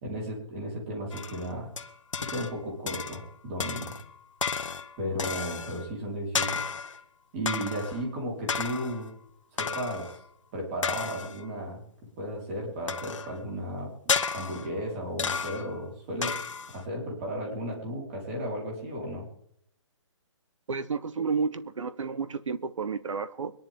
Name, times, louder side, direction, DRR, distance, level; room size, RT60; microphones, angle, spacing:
voice 1, 0.0-1.7 2.2-4.0 5.0-6.6 7.3-9.1 9.5-10.2 10.5-11.8 12.2-13.9 14.3-16.4 16.7-19.3, equal, 25° right, 4.4 m, -34 dB
sound 1, 1.1-2.6 2.9-3.3 3.6-5.9 6.3-7.0 7.5-8.0 8.5-9.1 9.6-10.2 10.8-11.5 12.9-13.4 14.1-14.8 15.2-15.8 16.2-16.8, left 5 dB, 80° left, 1.6 m, -32 dB
voice 2, 20.7-23.5, right 5 dB, 80° right, 1.3 m, -31 dB
23.5 x 11.0 x 3.8 m
hypercardioid pair, 170°, 16 cm